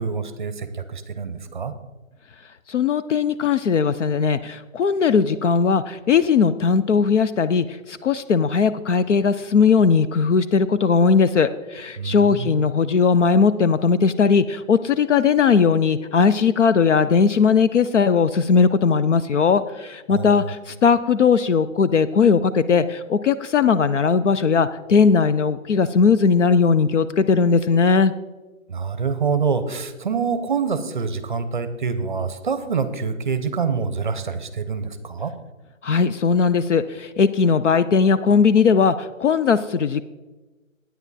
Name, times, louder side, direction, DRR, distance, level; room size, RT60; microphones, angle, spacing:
voice 1, 0.0-1.7 12.0-12.5 20.1-20.5 28.7-35.3, right 5 dB, 35° right, 11 dB, 0.6 m, -26 dB
voice 2, 2.7-28.1 35.8-40.0, left 5 dB, 60° left, 13 dB, 0.5 m, -18 dB
9.6 x 9.1 x 4.1 m, 1.2 s
hypercardioid pair, 170°, 41 cm